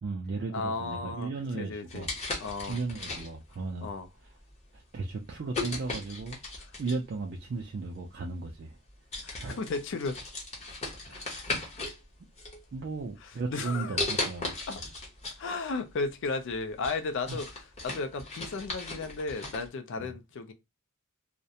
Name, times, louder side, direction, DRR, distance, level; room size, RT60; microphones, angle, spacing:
voice 1, 0.0-2.1 2.7-3.9 4.7-6.4 6.8-8.8 9.4-9.6 11.1-11.5 12.7-14.6 17.3-17.4 20.0-20.1, right 3 dB, 50° right, 0.4 m, -36 dB
voice 2, 0.5-2.1 2.4-2.8 3.8-4.1 9.2-10.2 13.2-14.0 14.7-14.8 15.4-20.5, left 3 dB, 60° left, 0.4 m, -34 dB
sound 1, 1.9-3.6 4.3-4.5 5.5-7.1 8.2-8.3 8.7-8.9 9.1-12.0 12.4-13.1 14.0-15.4 15.8-15.9 16.4-19.7, left 2 dB, 30° left, 0.8 m, -36 dB
2.3 x 2.1 x 2.7 m
head